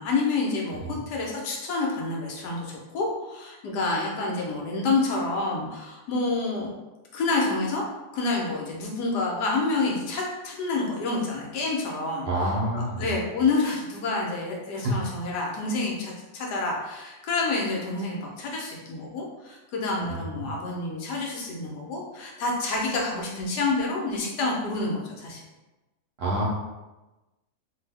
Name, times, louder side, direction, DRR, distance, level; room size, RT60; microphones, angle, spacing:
voice 1, 0.0-6.7 7.1-7.8 8.1-12.3 12.7-25.4, left 3 dB, 90° left, -2 dB, 1.3 m, -28 dB
voice 2, 12.2-13.1 14.7-15.0 20.1-20.5 26.2-26.5, right 1 dB, 65° right, -4 dB, 0.8 m, -28 dB
2.7 x 2.7 x 3.3 m, 1.1 s
omnidirectional pair, 1.7 m